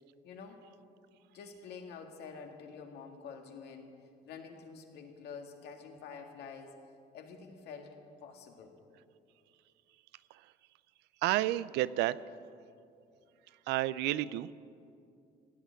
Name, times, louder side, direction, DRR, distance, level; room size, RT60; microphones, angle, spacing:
voice 1, 0.2-0.6 1.3-4.0 4.2-6.8 7.1-8.8, left 5 dB, 75° left, 3 dB, 2.0 m, -48 dB
voice 2, 11.2-12.2 13.7-14.5, right 15 dB, 90° right, 17 dB, 0.5 m, -30 dB
16.5 x 8.2 x 9.7 m, 2.4 s
cardioid pair, 110°, 17 cm